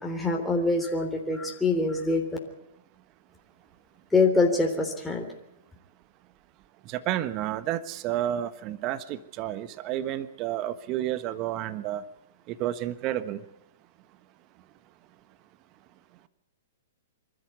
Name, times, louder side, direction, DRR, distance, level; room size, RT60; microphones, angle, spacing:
voice 1, 0.0-2.2 4.1-5.3, left 3 dB, 5° left, 0 dB, 3.6 m, -24 dB
voice 2, 6.9-12.0 12.5-13.4, right 12 dB, 35° right, 14 dB, 1.3 m, -31 dB
25.0 x 13.5 x 9.6 m, 0.86 s
hypercardioid pair, 115°, 0 cm